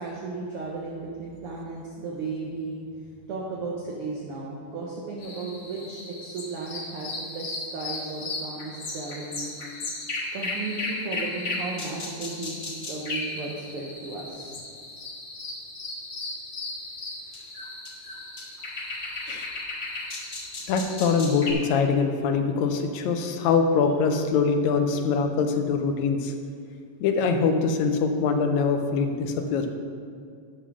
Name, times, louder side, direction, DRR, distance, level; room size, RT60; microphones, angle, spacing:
voice 1, 0.0-9.5 10.3-14.6, right 3 dB, 60° right, -3 dB, 1.6 m, -35 dB
sound 1, 5.2-21.5, left 2 dB, 55° left, 0.7 m, -35 dB
voice 2, 20.7-26.3 27.0-29.7, left 5 dB, 75° left, 5 dB, 1.9 m, -23 dB
10.0 x 5.6 x 6.2 m, 2.3 s
omnidirectional pair, 3.6 m